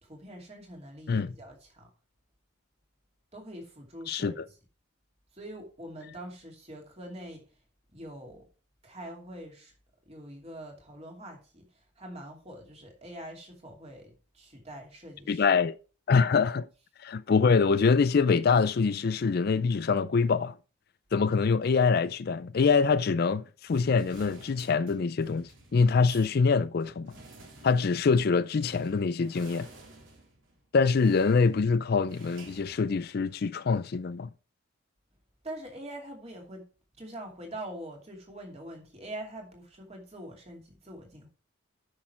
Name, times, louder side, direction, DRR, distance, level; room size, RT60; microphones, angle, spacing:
voice 1, 0.0-1.9 3.3-4.5 5.3-7.5 7.9-8.5 8.8-9.7 10.1-15.5 35.4-36.7 36.9-41.3, right 1 dB, 30° right, 2.6 m, -44 dB
voice 2, 4.1-4.4 15.3-15.8 16.1-16.7 17.0-20.5 21.1-27.1 27.6-29.7 30.7-34.3, left 5 dB, 45° left, 0.4 m, -24 dB
sound 1, 23.7-33.5, right 2 dB, 65° right, 3.1 m, -53 dB
9.6 x 6.4 x 4.4 m
head